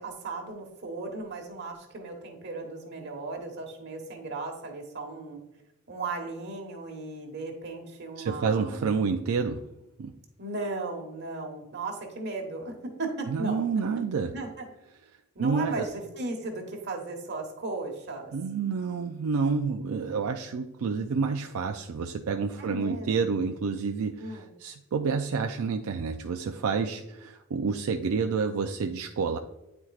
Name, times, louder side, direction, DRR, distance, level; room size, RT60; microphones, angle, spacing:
voice 1, 0.0-5.4 5.9-8.9 10.4-13.6 14.3-14.7 15.3-18.3 22.6-23.5 24.2-24.5, right 3 dB, 50° right, 3 dB, 1.3 m, -36 dB
voice 2, 8.2-9.7 10.0-10.2 13.3-14.3 15.4-15.9 18.3-29.4, right 5 dB, 80° right, 4 dB, 0.4 m, -29 dB
9.6 x 4.4 x 2.4 m, 0.93 s
head